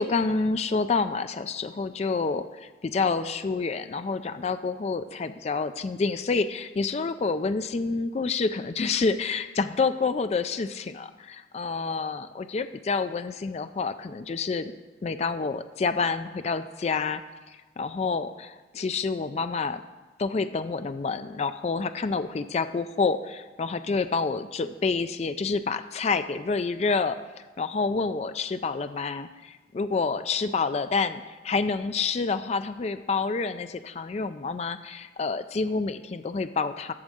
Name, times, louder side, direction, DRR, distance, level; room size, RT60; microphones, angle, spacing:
voice 1, 0.0-14.7 15.0-17.2 17.5-19.8 20.2-27.2 27.6-36.9, left 4 dB, 35° left, 10 dB, 0.3 m, -28 dB
8.6 x 6.5 x 6.2 m, 1.2 s
head